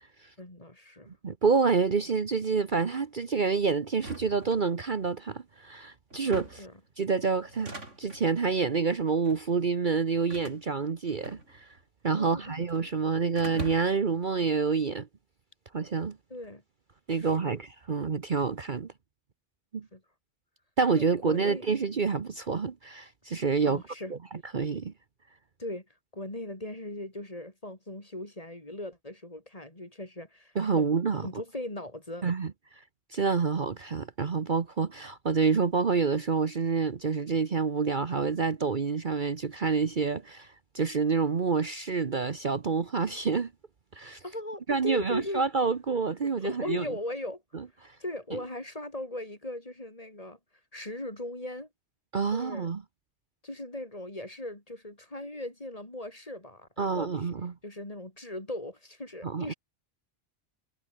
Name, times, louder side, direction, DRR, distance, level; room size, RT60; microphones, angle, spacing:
voice 1, 0.4-1.1 6.6-6.8 12.2-12.7 16.3-16.6 17.2-17.6 19.9-20.0 21.0-21.7 23.6-24.1 25.6-25.9 26.1-30.9 31.2-32.3 44.2-45.4 46.4-47.4 47.8-50.4 50.7-51.7 52.3-52.7 53.4-57.3 57.6-59.5, left 1 dB, 30° left, 4.0 m, -38 dB
voice 2, 1.1-6.7 7.0-7.7 8.0-11.7 12.0-15.1 15.7-16.2 17.1-18.9 19.7-19.9 20.8-23.8 24.1-24.2 24.5-24.9 30.5-31.3 32.2-32.5 33.1-43.5 43.9-44.2 44.7-46.8 52.1-52.8 56.8-57.5 59.2-59.5, right 5 dB, 45° right, 1.2 m, -28 dB
sound 1, 3.9-5.1 6.1-6.8 7.4-8.3 9.1-9.5 10.3-11.8 12.1-12.9 13.4-14.1, right 2 dB, 90° right, 5.8 m, -43 dB
omnidirectional pair, 1.2 m